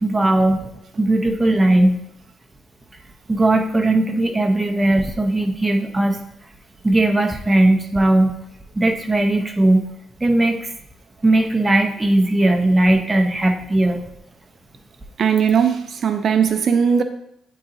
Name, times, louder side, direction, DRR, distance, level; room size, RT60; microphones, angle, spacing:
voice 1, 0.0-0.7 1.0-2.0 3.3-6.2 6.8-8.3 8.8-9.8 10.2-10.7 11.2-14.0, right 1 dB, 15° right, 0.7 m, -18 dB
voice 2, 15.2-17.0, right 7 dB, 55° right, 0.4 m, -18 dB
8.7 x 3.8 x 2.9 m
cardioid pair, 90°, 0 cm